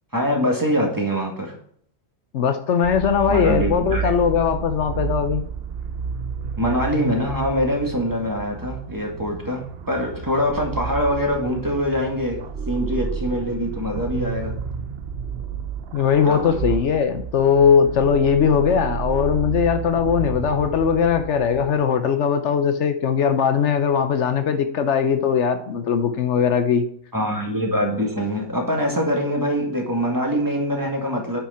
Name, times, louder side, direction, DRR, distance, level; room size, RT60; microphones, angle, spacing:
voice 1, 0.1-1.5 3.3-4.1 6.6-14.5 16.3-16.7 27.1-31.4, equal, 15° right, 0 dB, 1.9 m, -24 dB
voice 2, 2.3-5.4 15.9-26.9, left 7 dB, 70° left, 9 dB, 1.0 m, -20 dB
sound 1, 2.8-21.8, right 7 dB, 60° right, 0.9 m, -31 dB
8.7 x 5.9 x 4.3 m, 0.65 s
omnidirectional pair, 1.3 m